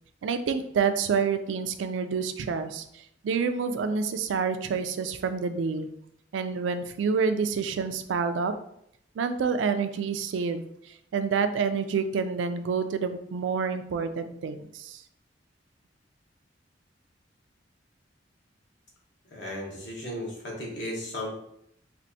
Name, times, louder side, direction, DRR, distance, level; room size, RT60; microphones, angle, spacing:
voice 1, 0.2-5.9 6.3-8.5 9.2-15.0, right 5 dB, 80° right, 9 dB, 0.3 m, -28 dB
voice 2, 19.3-21.3, left 1 dB, 65° left, -2 dB, 1.1 m, -35 dB
4.3 x 2.5 x 2.7 m, 0.74 s
head